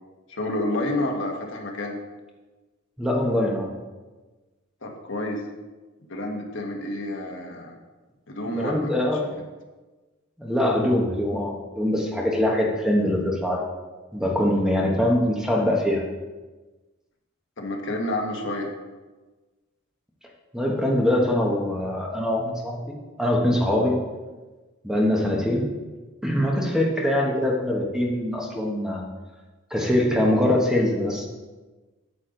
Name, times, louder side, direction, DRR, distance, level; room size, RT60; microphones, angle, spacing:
voice 1, 0.3-2.0 4.8-5.4 6.1-7.8 8.3-8.9 9.2-9.4 17.6-18.7, left 1 dB, 60° left, 1 dB, 1.4 m, -29 dB
voice 2, 3.0-3.7 8.5-9.3 10.4-13.6 14.1-16.0 20.5-22.8 23.2-24.0 24.8-25.7 26.2-29.0 29.7-31.3, left 1 dB, 5° right, -1 dB, 1.2 m, -23 dB
9.1 x 8.6 x 3.9 m, 1.2 s
head